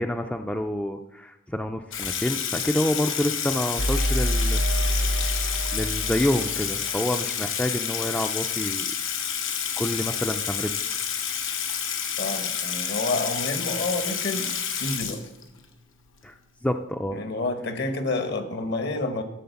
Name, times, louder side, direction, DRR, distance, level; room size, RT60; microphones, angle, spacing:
voice 1, 0.0-4.6 5.7-8.9 9.8-10.8 16.2-16.3 16.6-17.2, left 1 dB, 5° left, 6 dB, 0.3 m, -28 dB
Water tap faucet / Sink (filling or washing), 1.9-15.7, left 8 dB, 85° left, 1.1 m, -29 dB
sound 1, 3.8-7.5, equal, 75° right, 0.9 m, -27 dB
voice 2, 12.2-14.5 14.8-15.2 17.1-19.2, left 2 dB, 55° left, 8 dB, 1.1 m, -29 dB
12.5 x 4.2 x 6.9 m, 0.94 s
head